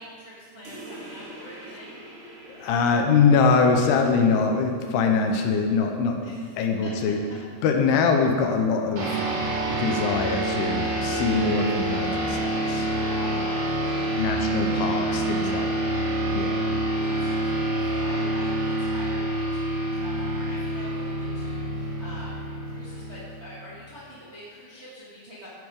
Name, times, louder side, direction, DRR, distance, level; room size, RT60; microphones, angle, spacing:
voice 1, 0.0-2.0 6.2-6.5 6.8-7.1 12.9-14.1 15.2-15.6 16.9-25.5, equal, 40° right, -9 dB, 0.8 m, -44 dB
sound 1, 0.6-5.7, right 1 dB, 80° right, 4.7 m, -45 dB
voice 2, 2.5-6.2 6.6-7.2 7.6-9.2 9.8-12.9 14.2-15.7 16.3-16.7, left 5 dB, 85° left, 4 dB, 2.7 m, -23 dB
sound 2, 9.0-23.8, right 1 dB, 60° right, 1.7 m, -27 dB
11.0 x 5.3 x 5.1 m, 2.1 s
omnidirectional pair, 4.6 m